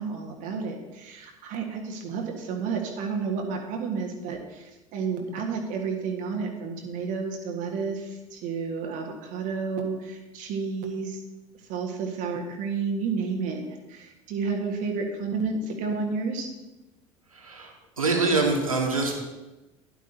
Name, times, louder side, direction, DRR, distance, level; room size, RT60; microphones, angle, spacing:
voice 1, 0.0-11.2 11.7-13.6 13.9-16.5, right 5 dB, 50° right, 2 dB, 1.6 m, -31 dB
voice 2, 17.3-19.1, right 3 dB, 80° right, 1 dB, 1.7 m, -25 dB
12.5 x 11.0 x 2.8 m, 1.1 s
figure-of-eight pair, 70°, 17 cm